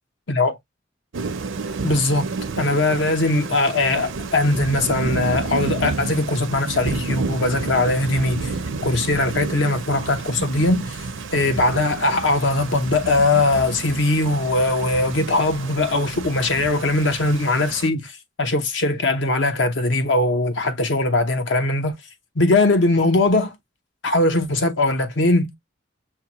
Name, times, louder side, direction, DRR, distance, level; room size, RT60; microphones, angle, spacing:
Thunder / Rain, 1.1-17.9, right 4 dB, 80° right, 0.6 m, -30 dB
voice 1, 1.8-2.3 2.6-8.5 8.8-11.0 11.3-18.1 18.4-22.0 22.4-23.5 24.0-25.5, left 2 dB, 70° left, 0.8 m, -20 dB
5.7 x 2.2 x 2.9 m
head